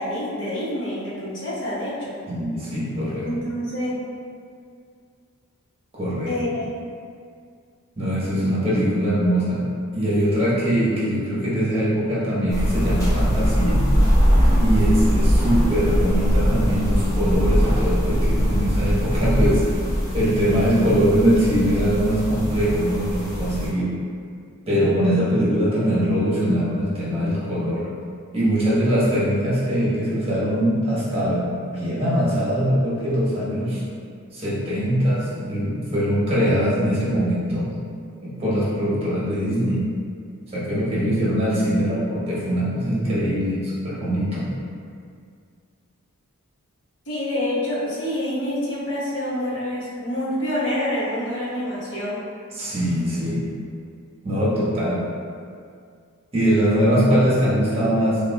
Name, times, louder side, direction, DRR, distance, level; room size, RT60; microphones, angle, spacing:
voice 1, 0.0-2.2 3.2-4.0 6.3-6.7 47.1-52.2, left 1 dB, 60° left, -8 dB, 1.1 m, -27 dB
voice 2, 2.3-3.3 5.9-6.3 8.0-9.6 9.9-13.9 14.5-19.6 20.1-23.9 24.7-27.8 28.3-33.8 34.3-37.7 38.2-39.8 40.5-44.5 52.5-53.4 54.2-55.0 56.3-58.2, equal, 25° right, -9 dB, 1.1 m, -22 dB
sound 1, 12.5-23.7, equal, 15° left, 0.7 m, -21 dB
6.1 x 2.4 x 2.2 m, 2.2 s
head